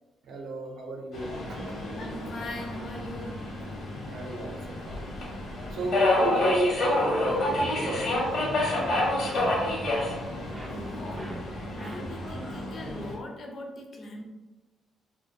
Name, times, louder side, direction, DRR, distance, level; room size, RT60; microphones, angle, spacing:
voice 1, 0.2-1.9 4.0-5.1 5.7-8.2 11.9-12.1, right 1 dB, 70° right, 0 dB, 0.5 m, -33 dB
Subway metro underground, 1.1-13.1, left 1 dB, 70° left, 0.9 m, -29 dB
voice 2, 1.9-3.5 9.2-9.7 10.7-11.4 11.8-14.2, left 1 dB, 50° left, 1 dB, 0.5 m, -40 dB
sound 1, 7.3-12.4, right 1 dB, 20° right, 0.3 m, -42 dB
2.1 x 2.1 x 3.0 m, 1.1 s
cardioid pair, 90°, 0 cm